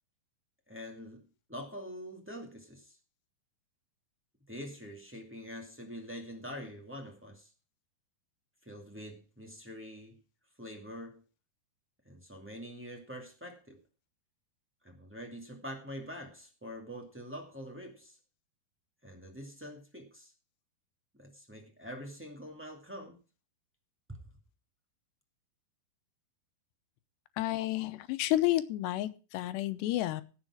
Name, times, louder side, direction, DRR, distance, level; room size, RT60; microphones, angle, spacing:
voice 1, 0.7-3.0 4.5-7.5 8.6-10.2 10.6-11.2 12.0-13.8 14.8-18.2 19.0-20.3 21.1-23.2 24.1-24.2, equal, 20° right, 1 dB, 0.3 m, -45 dB
voice 2, 27.4-29.1 29.3-30.2, left 15 dB, 80° left, 12 dB, 3.0 m, -30 dB
17.0 x 7.4 x 4.8 m, 0.34 s
omnidirectional pair, 4.9 m